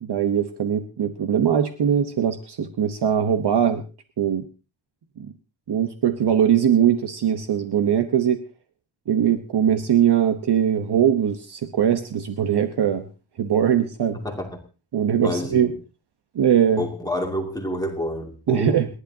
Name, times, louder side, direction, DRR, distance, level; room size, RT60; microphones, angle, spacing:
voice 1, 0.0-3.8 4.2-4.4 5.2-5.3 5.7-8.4 9.1-13.1 13.4-14.2 14.9-15.7 16.3-16.8 18.5-18.9, right 9 dB, 60° right, 8 dB, 1.1 m, -21 dB
voice 2, 15.2-15.8 16.8-18.9, left 1 dB, 10° left, 1 dB, 2.4 m, -28 dB
29.0 x 11.5 x 2.8 m, 0.32 s
wide cardioid pair, 165°, 46 cm